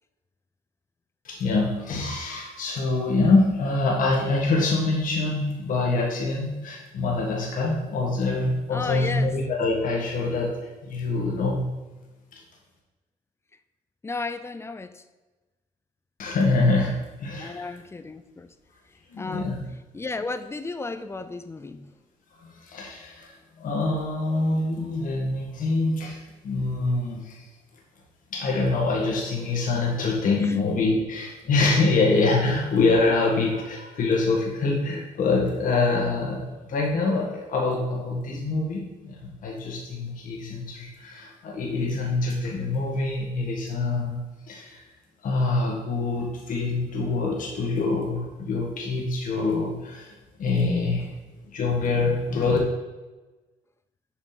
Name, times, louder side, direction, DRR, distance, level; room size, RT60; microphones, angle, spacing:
voice 1, 1.2-11.7 12.3-12.4 16.2-17.7 19.1-19.6 22.4-27.4 28.3-44.8 45.2-51.1 51.5-52.6, left 3 dB, 60° left, -2 dB, 1.7 m, -25 dB
voice 2, 8.7-9.4 14.0-15.0 17.4-18.5 19.2-21.9 30.4-30.6, left 3 dB, 15° left, 11 dB, 0.5 m, -34 dB
7.3 x 5.1 x 4.1 m, 1.1 s
cardioid pair, 100°, 16 cm